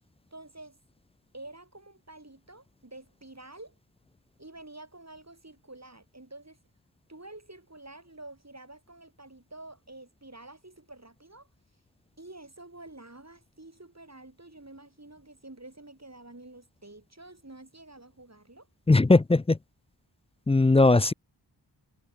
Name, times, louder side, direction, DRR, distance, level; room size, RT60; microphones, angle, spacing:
voice 1, 0.3-0.8 1.3-3.8 4.4-6.6 7.1-11.5 12.2-18.7, right 2 dB, 40° right, 8.0 m, -48 dB
voice 2, 18.9-19.6 20.5-21.1, left 2 dB, 15° left, 0.3 m, -19 dB
wide cardioid pair, 50°, 42 cm